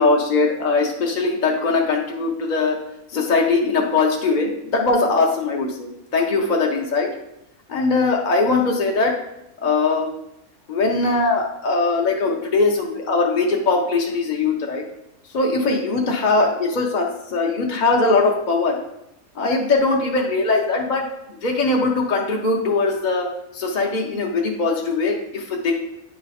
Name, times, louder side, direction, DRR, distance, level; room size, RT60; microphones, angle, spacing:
voice 1, 0.0-2.8 3.1-7.1 7.7-9.1 9.6-10.1 10.7-14.8 15.3-18.8 19.3-25.7, left 3 dB, 45° left, 0 dB, 0.6 m, -21 dB
9.2 x 3.2 x 4.1 m, 0.82 s
omnidirectional pair, 1.6 m